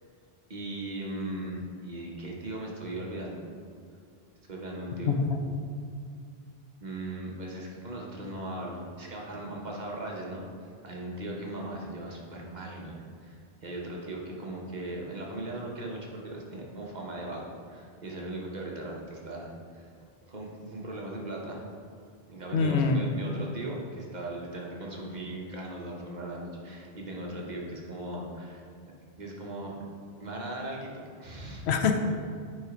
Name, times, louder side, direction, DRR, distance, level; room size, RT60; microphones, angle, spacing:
voice 1, 0.5-3.4 4.5-5.2 6.8-10.4 10.8-19.9 20.3-21.7 22.3-28.6 29.2-29.7 30.2-31.6, right 1 dB, 45° right, -2 dB, 1.0 m, -38 dB
voice 2, 5.1-5.4 22.5-23.1 31.7-32.0, left 5 dB, 80° left, 5 dB, 0.9 m, -25 dB
8.1 x 3.2 x 4.9 m, 2.3 s
omnidirectional pair, 1.1 m